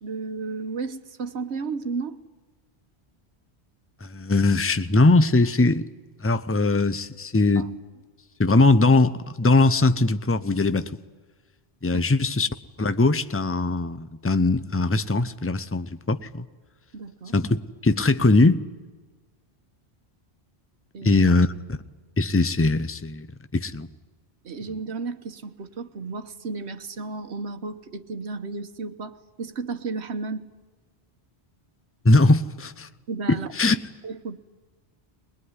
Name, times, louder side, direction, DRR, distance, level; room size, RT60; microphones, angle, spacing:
voice 1, 0.0-2.2 7.6-7.7 11.9-12.0 16.9-17.4 20.9-21.4 24.4-30.5 33.1-33.7 34.0-34.4, right 4 dB, 80° right, 9 dB, 1.4 m, -33 dB
voice 2, 4.0-5.9 6.2-7.7 8.4-10.9 11.8-12.5 12.8-16.4 17.3-18.6 21.0-21.8 22.2-23.3 23.5-23.9 32.0-32.9 33.3-33.8, left 2 dB, 15° left, 12 dB, 0.6 m, -20 dB
21.5 x 21.5 x 9.7 m, 1.3 s
omnidirectional pair, 1.1 m